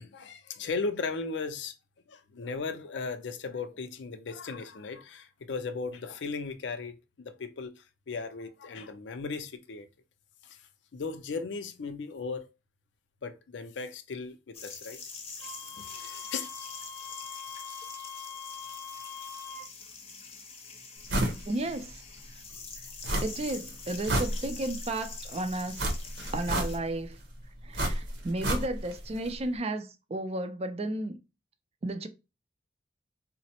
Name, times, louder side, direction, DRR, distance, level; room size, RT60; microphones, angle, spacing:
voice 1, 0.0-1.7 2.1-9.9 10.4-10.6 10.9-12.5 13.2-15.0 15.7-16.5, left 4 dB, 90° left, 0.5 m, -37 dB
sound 1, 14.5-26.8, left 5 dB, 35° left, 0.7 m, -45 dB
Wind instrument woodwind instrument, 15.4-19.7, left 6 dB, 5° right, 0.8 m, -43 dB
sound 2, 21.1-21.4 21.8-21.9 23.0-23.5 23.9-24.8 25.8-27.0 27.7-29.0 29.3-29.4, right 1 dB, 70° right, 0.9 m, -30 dB
voice 2, 21.5-22.0 23.2-25.9 26.3-27.2 27.6-31.2 31.8-32.1, right 2 dB, 35° right, 0.4 m, -33 dB
3.8 x 2.1 x 2.8 m
head